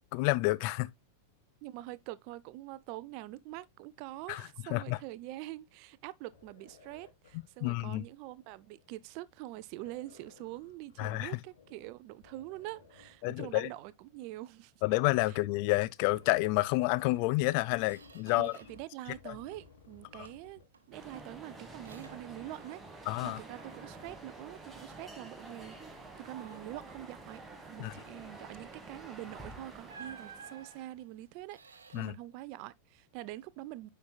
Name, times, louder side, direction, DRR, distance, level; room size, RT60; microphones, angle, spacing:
voice 1, 0.1-0.9 4.3-4.4 4.7-5.0 7.6-8.0 11.0-11.3 13.2-13.7 14.8-18.5 19.3-19.4 23.1-23.4 27.8-27.9 31.9-32.1, left 21 dB, 45° left, 0.3 m, -29 dB
voice 2, 1.6-14.7 15.3-15.4 18.3-20.6 20.9-25.8 26.2-33.9, right 16 dB, 45° right, 0.4 m, -45 dB
sound 1, 6.3-9.1 9.7-11.9 12.2-14.0 15.0-22.8, left 5 dB, 65° left, 2.0 m, -59 dB
Squeak, 17.0-17.1 17.5-18.9 19.2-19.8 20.2-23.0 23.3-25.2 25.6-25.8 26.2-26.9 29.0-29.2 29.9-32.1, right 5 dB, 70° right, 1.0 m, -55 dB
sound 2, 20.9-31.0, right 2 dB, 10° right, 1.4 m, -49 dB
9.3 x 4.6 x 2.3 m
figure-of-eight pair, 90°, 0 cm